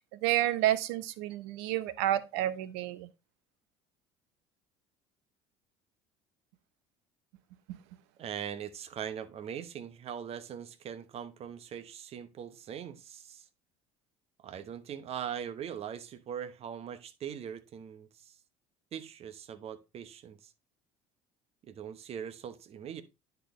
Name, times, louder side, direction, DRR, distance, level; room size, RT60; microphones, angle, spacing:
voice 1, 0.1-3.1 7.7-7.8, right 13 dB, 80° right, 0.7 m, -30 dB
voice 2, 8.2-13.5 14.4-18.4 18.9-20.5 21.7-23.0, right 8 dB, 45° right, 0.9 m, -41 dB
9.9 x 4.6 x 3.2 m
supercardioid pair, 75°, 14 cm